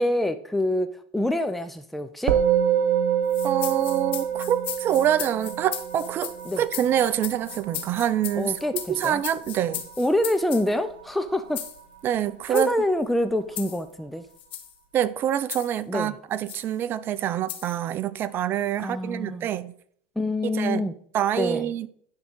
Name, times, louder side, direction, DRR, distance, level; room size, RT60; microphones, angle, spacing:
voice 1, 0.0-2.4 6.5-6.6 8.4-9.2 10.0-11.6 12.5-14.2 15.9-16.2 18.8-19.5 20.2-21.0 21.4-21.7, left 1 dB, ahead, 0.6 m, -26 dB
Musical instrument, 2.3-11.8, right 9 dB, 70° right, 1.2 m, -28 dB
sound 1, 3.3-10.7 11.5-11.8 12.4-12.7 13.5-13.8 14.4-14.7 15.5-15.8 16.5-16.7 17.5-17.8, left 11 dB, 85° left, 1.4 m, -36 dB
voice 2, 3.4-8.5 8.9-9.8 12.0-12.7 14.9-19.7 20.4-20.8 21.1-21.9, right 10 dB, 40° right, 0.6 m, -26 dB
10.5 x 3.8 x 6.2 m
supercardioid pair, 115°, 6 cm